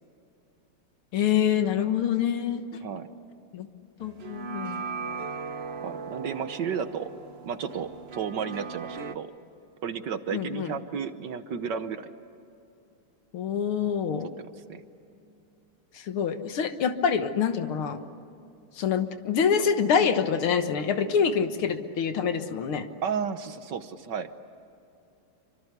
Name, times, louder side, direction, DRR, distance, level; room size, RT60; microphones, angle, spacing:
voice 1, 1.1-2.6 3.5-3.7 4.0-5.2 10.3-10.7 13.3-14.3 15.9-18.0 18.7-22.9, left 7 dB, 75° left, 9 dB, 2.2 m, -26 dB
sound 1, 4.0-9.2, right 5 dB, 45° right, 0.8 m, -38 dB
voice 2, 5.8-7.1 7.4-9.3 9.8-12.1 14.4-14.8 23.0-24.3, right 7 dB, 60° right, 10 dB, 1.5 m, -33 dB
28.5 x 25.0 x 8.3 m, 2.7 s
omnidirectional pair, 2.4 m